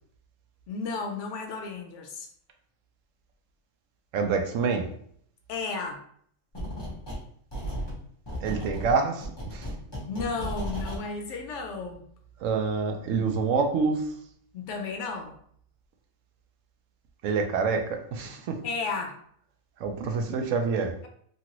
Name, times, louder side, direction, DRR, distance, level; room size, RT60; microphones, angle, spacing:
voice 1, 0.7-2.3 5.5-6.0 10.1-12.0 14.5-15.4 18.6-19.2, left 4 dB, 70° left, 3 dB, 0.8 m, -33 dB
voice 2, 4.1-4.8 8.4-9.7 12.4-14.1 17.2-18.6 19.8-20.9, right 5 dB, 75° right, 4 dB, 0.9 m, -27 dB
sound 1, 6.5-7.2 7.5-11.0, equal, 20° left, 0.8 m, -35 dB
2.9 x 2.5 x 2.9 m, 0.62 s
omnidirectional pair, 1.4 m